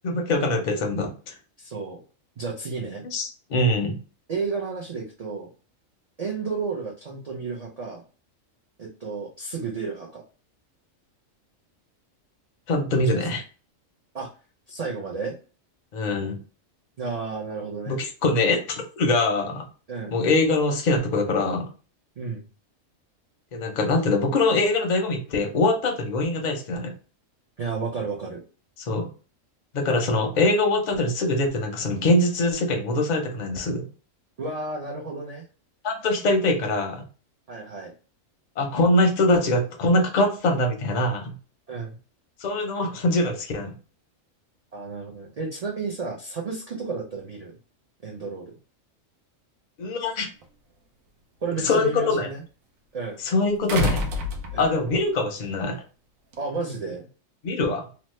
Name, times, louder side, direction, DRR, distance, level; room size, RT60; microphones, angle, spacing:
voice 1, 0.0-1.3 3.1-4.0 12.7-13.4 15.9-16.4 17.9-19.6 20.1-21.7 23.5-26.9 28.8-29.1 29.7-33.8 35.8-37.0 38.6-41.4 42.4-43.7 49.8-50.3 51.6-52.3 53.2-54.1 54.6-55.8 57.4-57.9, left 2 dB, 50° left, 4 dB, 0.5 m, -23 dB
voice 2, 1.6-2.0 2.4-3.0 4.3-5.5 6.2-8.0 8.8-10.2 13.0-13.2 14.1-14.3 14.7-15.4 17.0-18.0 19.9-20.2 22.2-22.4 27.6-28.4 34.4-35.5 37.5-37.9 41.7-42.0 44.7-47.5 48.0-48.5 51.4-52.4 52.9-53.2 54.5-54.9 56.4-57.1, right 4 dB, 55° right, -2 dB, 0.4 m, -32 dB
sound 1, 50.4-50.5 53.7-55.0 56.3-56.4, left 3 dB, 85° right, 1.0 m, -28 dB
2.9 x 2.1 x 3.0 m, 0.36 s
omnidirectional pair, 1.4 m